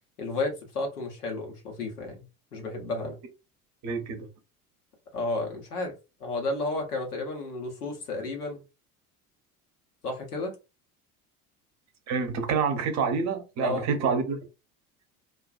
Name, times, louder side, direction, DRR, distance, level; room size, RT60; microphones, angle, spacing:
voice 1, 0.2-2.3 2.5-3.2 5.1-5.9 6.2-8.6 10.0-10.5 13.6-13.9, left 2 dB, 80° left, 0.9 m, -32 dB
voice 2, 3.8-4.3 12.1-14.4, right 5 dB, 40° right, 0.7 m, -27 dB
2.4 x 2.2 x 2.3 m
figure-of-eight pair, 65°, 45 cm